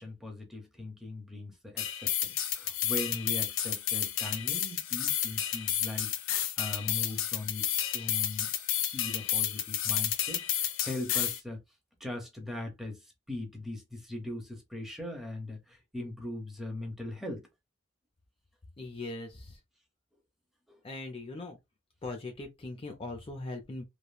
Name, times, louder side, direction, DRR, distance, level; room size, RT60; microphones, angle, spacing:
voice 1, 0.0-6.2 6.6-8.5 8.9-11.6 12.0-13.0 13.3-17.5 20.7-20.8, left 2 dB, ahead, 0.8 m, -40 dB
sound 1, 1.8-11.4, left 10 dB, 85° left, 0.5 m, -31 dB
voice 2, 18.8-19.6 20.8-21.6 22.0-23.8, left 2 dB, 30° left, 0.5 m, -40 dB
3.3 x 2.2 x 2.3 m
head